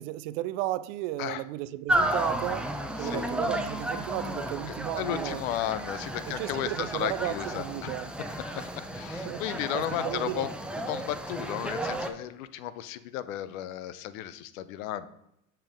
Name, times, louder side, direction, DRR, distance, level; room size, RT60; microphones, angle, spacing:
voice 1, 0.0-2.7 3.0-5.4 6.3-8.1 9.3-9.4 9.7-10.5, right 15 dB, 60° right, 16 dB, 0.5 m, -34 dB
sound 1, 1.9-12.1, right 1 dB, ahead, 0.5 m, -33 dB
voice 2, 3.0-3.3 4.7-10.5 10.9-15.1, left 12 dB, 65° left, 14 dB, 0.7 m, -34 dB
7.0 x 5.6 x 3.6 m, 0.80 s
hypercardioid pair, 90°, 43 cm